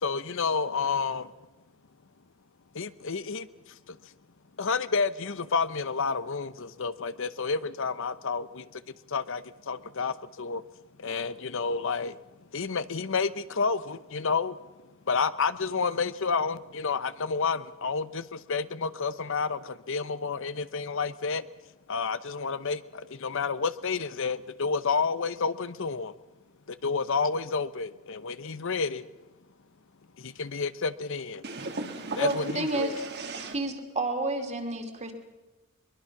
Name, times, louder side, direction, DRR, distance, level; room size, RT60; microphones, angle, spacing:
voice 1, 0.0-1.3 2.7-4.0 4.6-8.8 9.1-10.6 11.0-12.2 12.5-14.6 15.1-21.4 21.9-26.1 26.7-29.1 30.2-31.4 32.2-33.0, left 5 dB, 65° left, 0.8 m, -30 dB
voice 2, 31.4-33.6, right 3 dB, 50° right, 2.4 m, -37 dB
voice 3, 32.2-32.9 33.5-35.1, right 2 dB, 30° right, 2.7 m, -30 dB
23.0 x 22.5 x 5.9 m
head